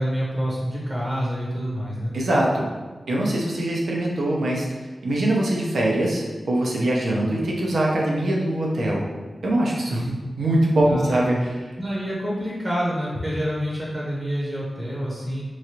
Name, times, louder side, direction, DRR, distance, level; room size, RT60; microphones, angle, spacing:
voice 1, 0.0-2.1 10.8-11.2 11.8-15.4, equal, 25° right, -5 dB, 0.7 m, -27 dB
voice 2, 2.1-2.7 3.1-4.7 5.0-9.1 9.4-11.5, right 1 dB, 90° right, -3 dB, 0.5 m, -22 dB
3.1 x 2.4 x 2.8 m, 1.3 s
wide cardioid pair, 80°, 0 cm